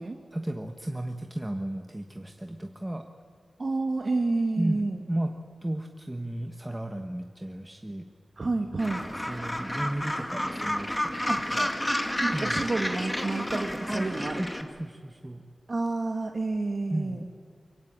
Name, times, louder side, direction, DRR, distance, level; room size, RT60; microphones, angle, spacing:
voice 1, 0.3-3.0 4.6-5.3 5.6-8.1 9.3-11.2 11.5-11.7 12.3-12.6 13.9-14.1 14.4-15.4 16.9-17.3, right 1 dB, 10° right, 4 dB, 1.3 m, -34 dB
voice 2, 3.6-5.0 8.4-9.0 11.3-11.4 12.2-14.4 15.7-17.3, right 3 dB, 45° right, 3 dB, 1.8 m, -29 dB
Gull seagull, 8.8-14.6, left 1 dB, 10° left, 2.1 m, -31 dB
24.5 x 23.5 x 8.9 m, 2.2 s
wide cardioid pair, 120°, 0 cm